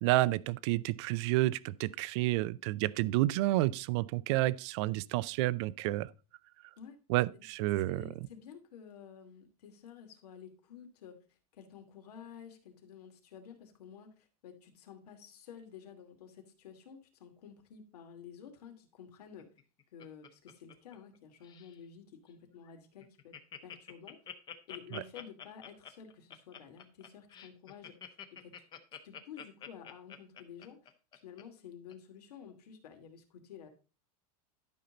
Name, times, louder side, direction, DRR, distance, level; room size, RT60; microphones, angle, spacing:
voice 1, 0.0-6.1 7.1-8.0 24.9-25.0, right 17 dB, 50° right, 0.5 m, -30 dB
voice 2, 7.9-19.5 19.9-23.3 23.6-24.2 24.7-28.5 29.0-30.8 31.1-33.7, left 8 dB, 85° left, 2.6 m, -51 dB
Laughter, 19.4-21.2 21.4-21.8 22.3-22.4 22.6-22.7 23.0-31.4 31.9-32.0, left 8 dB, 20° left, 0.9 m, -48 dB
12.0 x 5.7 x 3.8 m
supercardioid pair, 160°, 19 cm